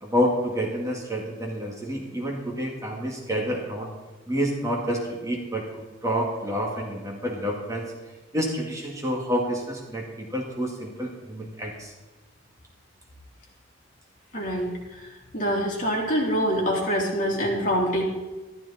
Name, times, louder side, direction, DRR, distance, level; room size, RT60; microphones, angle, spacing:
voice 1, 0.0-3.9 4.3-7.9 8.3-11.9, equal, 15° right, -1 dB, 2.2 m, -28 dB
voice 2, 14.3-15.1 15.3-18.0, equal, 45° left, -3 dB, 3.6 m, -25 dB
13.5 x 12.5 x 4.3 m, 1.2 s
head